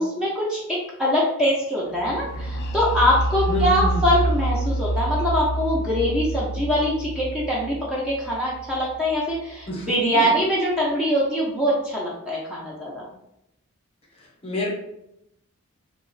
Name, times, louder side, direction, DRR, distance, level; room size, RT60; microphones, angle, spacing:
voice 1, 0.0-13.1, equal, 5° right, -7 dB, 0.5 m, -23 dB
sound 1, 2.0-9.7, right 1 dB, 50° left, 0.3 m, -28 dB
voice 2, 3.5-4.0 9.7-10.3 14.2-14.7, left 1 dB, 25° left, -3 dB, 0.8 m, -29 dB
2.9 x 2.0 x 3.8 m, 0.82 s
head